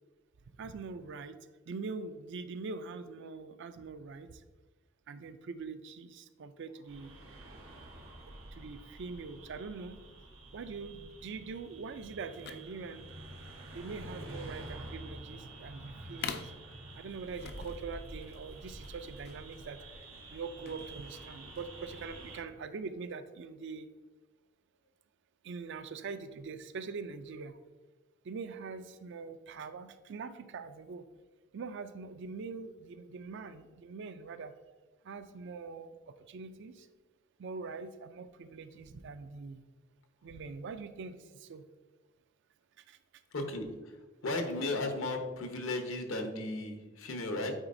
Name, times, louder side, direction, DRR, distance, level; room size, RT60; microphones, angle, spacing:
voice 1, 0.6-1.4 1.7-4.4 5.1-7.1 8.5-10.0 10.5-13.1 13.7-16.5 16.9-19.8 20.3-23.9 25.4-27.6 28.2-31.1 31.5-34.5 35.0-36.9 37.4-39.6 40.2-41.6 42.8-43.0, right 4 dB, 65° right, 11 dB, 0.4 m, -43 dB
sound 1, 6.9-22.4, right 2 dB, 85° right, 1.0 m, -48 dB
sound 2, 12.3-21.8, left 7 dB, 55° left, 0.4 m, -47 dB
voice 2, 43.3-43.9 44.2-47.5, left 2 dB, 80° left, 5 dB, 0.9 m, -35 dB
8.8 x 4.1 x 2.6 m, 1.3 s
head